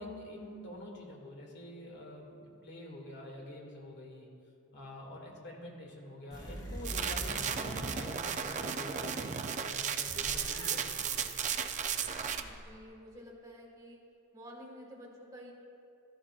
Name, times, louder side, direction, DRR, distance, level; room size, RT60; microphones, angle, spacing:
voice 1, 0.0-4.3 4.7-11.3 11.9-12.1, left 1 dB, 55° left, -1 dB, 2.1 m, -47 dB
sound 1, 6.3-9.0 9.5-12.8, equal, 20° left, 2.2 m, -45 dB
sound 2, 6.8-12.4, right 7 dB, 35° right, 0.5 m, -35 dB
voice 2, 12.4-14.0 14.3-15.5, equal, 15° right, -3 dB, 1.8 m, -50 dB
15.0 x 13.0 x 2.4 m, 2.6 s
head